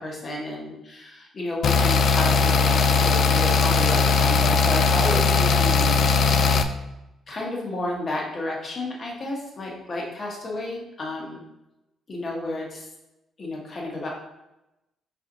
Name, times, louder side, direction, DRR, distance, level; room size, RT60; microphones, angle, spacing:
voice 1, 0.0-6.3 7.3-11.4 12.1-12.9 13.4-14.1, left 1 dB, 45° left, -2 dB, 1.3 m, -31 dB
sound 1, 1.6-6.6, left 4 dB, 65° left, 0.3 m, -19 dB
4.5 x 4.0 x 2.6 m, 0.93 s
cardioid pair, 90°, 0 cm